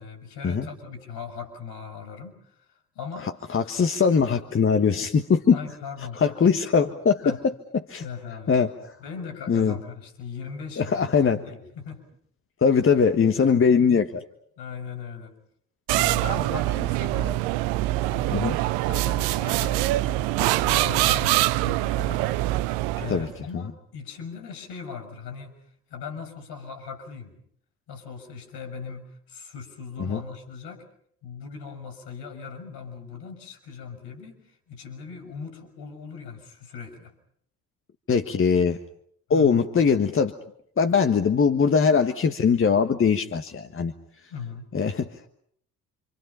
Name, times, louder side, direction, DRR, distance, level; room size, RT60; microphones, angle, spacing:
voice 1, 0.0-2.6 2.9-3.3 5.5-6.9 7.2-7.4 8.0-8.6 9.0-12.0 13.3-13.6 14.6-15.3 15.9-17.5 18.1-22.3 23.0-25.6 25.9-27.3 27.9-30.9 31.2-37.1 39.3-39.6 44.3-44.7, left 6 dB, 55° left, 6 dB, 6.7 m, -39 dB
voice 2, 3.2-5.6 6.2-7.5 7.9-8.0 8.5-8.7 9.5-9.7 10.8-11.4 12.6-14.2 18.3-18.6 23.1-23.3 30.0-30.2 38.1-38.8 39.3-40.4 40.8-43.9 44.7-45.1, left 6 dB, 25° left, 8 dB, 1.5 m, -21 dB
sound 1, 15.9-23.3, right 16 dB, 60° right, 0.9 m, -24 dB
28.5 x 27.0 x 5.7 m, 0.66 s
figure-of-eight pair, 55°, 46 cm